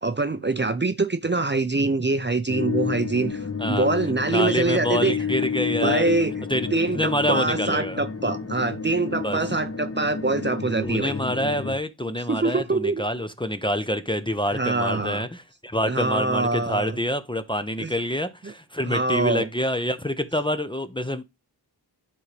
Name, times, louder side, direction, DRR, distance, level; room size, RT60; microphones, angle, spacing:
voice 1, 0.0-5.1 5.8-6.3 6.7-11.1 12.3-13.0 14.5-15.2 15.9-17.0 17.8-17.9 18.4-18.5 18.9-19.5, right 3 dB, 25° right, 0.7 m, -24 dB
sound 1, 2.5-11.8, left 6 dB, 35° left, 1.2 m, -30 dB
voice 2, 4.2-6.1 6.5-8.0 9.2-9.4 10.8-21.2, equal, 10° left, 0.7 m, -27 dB
11.0 x 3.8 x 3.3 m
wide cardioid pair, 65°, 41 cm